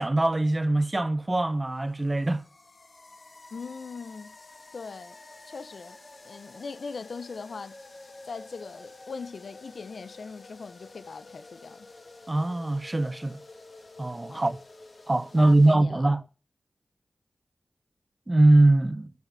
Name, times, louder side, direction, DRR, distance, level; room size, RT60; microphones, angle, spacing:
voice 1, 0.0-2.4 12.3-13.4 14.0-14.6 15.1-16.2 18.3-19.1, right 2 dB, 30° right, 0.8 m, -22 dB
sound 1, 1.1-15.8, left 2 dB, 55° left, 1.9 m, -50 dB
voice 2, 3.5-4.4 4.7-5.2 5.5-6.0 6.2-7.8 8.3-11.9 14.3-14.5 15.3-16.1, left 4 dB, 80° left, 0.7 m, -40 dB
9.2 x 7.5 x 6.7 m
wide cardioid pair, 60°, 0 cm